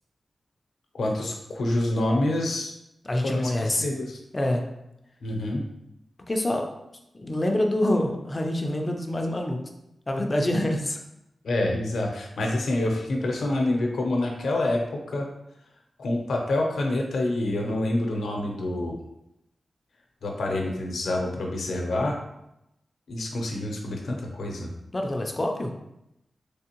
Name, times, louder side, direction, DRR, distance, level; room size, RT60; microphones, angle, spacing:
voice 1, 0.9-2.7 3.2-3.5 3.8-4.2 5.2-5.6 11.4-15.3 16.0-19.0 20.2-22.2 23.1-24.7, left 1 dB, 90° left, 1 dB, 0.6 m, -27 dB
voice 2, 3.0-3.9 4.3-4.6 6.3-6.7 7.1-9.6 10.1-11.0 24.9-25.7, left 1 dB, 25° left, 3 dB, 0.4 m, -26 dB
3.5 x 3.3 x 2.9 m, 0.85 s
wide cardioid pair, 160°, 0 cm